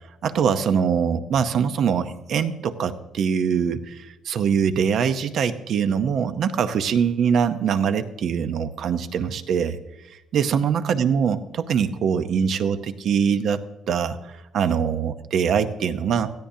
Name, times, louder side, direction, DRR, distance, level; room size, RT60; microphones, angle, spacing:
voice 1, 0.2-9.8 10.1-13.6 13.9-16.3, right 7 dB, 50° right, 10 dB, 0.8 m, -23 dB
17.0 x 14.0 x 2.8 m, 1.0 s
cardioid pair, 170°, 0 cm